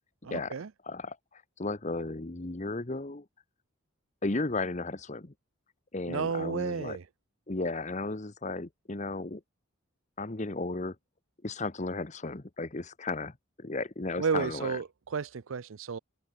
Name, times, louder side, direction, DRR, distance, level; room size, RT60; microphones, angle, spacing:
voice 1, 0.2-0.7 6.1-7.1 14.2-16.0, right 5 dB, 70° right, 0.5 m, -32 dB
voice 2, 0.8-3.2 4.2-5.3 5.9-7.0 7.5-9.4 10.2-11.0 11.4-14.8, left 2 dB, 35° left, 1.0 m, -34 dB
head